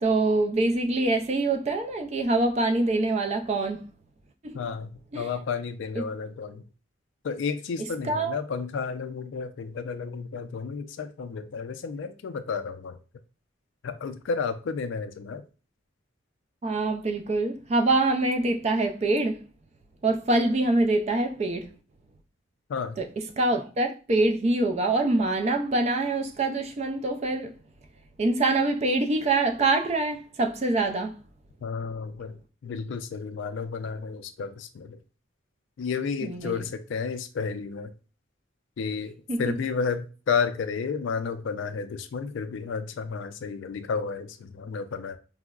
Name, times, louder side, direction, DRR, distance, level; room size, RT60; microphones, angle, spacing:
voice 1, 0.0-3.9 4.4-4.6 5.1-5.3 5.9-6.0 8.0-8.4 16.6-19.4 20.0-21.7 23.0-23.1 23.4-27.5 28.2-31.2 36.2-36.6 39.3-39.6, right 2 dB, 35° right, 0.3 m, -25 dB
voice 2, 4.5-6.6 7.2-13.0 13.8-15.4 22.7-23.0 31.6-35.0 35.8-37.9 38.8-45.2, left 5 dB, 65° left, 0.3 m, -32 dB
4.4 x 2.0 x 2.3 m
head